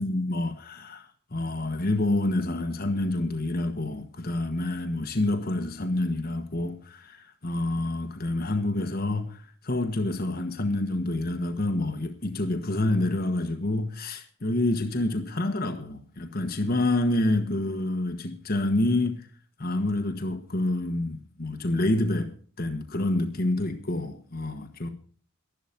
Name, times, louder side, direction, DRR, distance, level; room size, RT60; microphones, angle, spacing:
voice 1, 0.0-19.3 19.6-22.3 22.6-24.9, left 2 dB, 45° left, 1.4 m, -28 dB
12.5 x 11.5 x 5.2 m
head